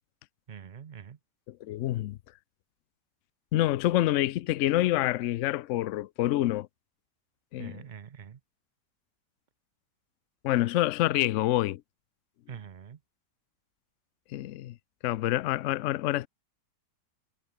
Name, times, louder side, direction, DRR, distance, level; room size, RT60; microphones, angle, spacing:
voice 1, 0.5-1.2 7.6-8.4 12.5-13.0, right 7 dB, 70° right, 0.4 m, -44 dB
voice 2, 1.6-2.2 3.5-6.7 7.5-7.9 10.4-11.8 14.3-14.7 15.0-16.3, left 15 dB, 80° left, 0.6 m, -27 dB
omnidirectional pair, 1.8 m